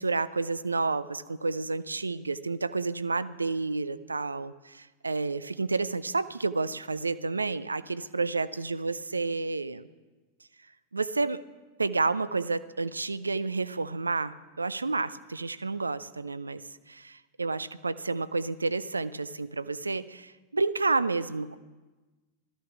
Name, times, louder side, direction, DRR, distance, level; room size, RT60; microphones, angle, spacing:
voice 1, 0.0-9.9 10.9-11.4 11.8-21.6, right 3 dB, 80° right, 16 dB, 0.5 m, -30 dB
16.0 x 13.5 x 5.9 m, 1.2 s
figure-of-eight pair, 90°, 0 cm